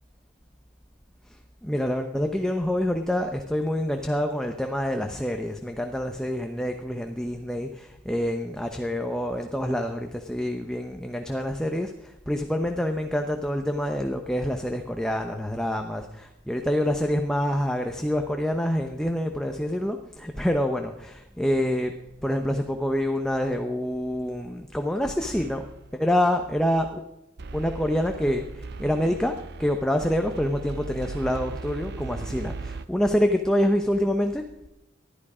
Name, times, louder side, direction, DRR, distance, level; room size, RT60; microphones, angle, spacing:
voice 1, 1.6-21.9 22.2-25.7 25.9-27.0 27.5-34.4, equal, 5° left, 4 dB, 0.8 m, -26 dB
sound 1, 25.2-25.9 27.4-32.9, right 3 dB, 55° right, 0.6 m, -38 dB
19.5 x 12.5 x 5.0 m, 0.92 s
head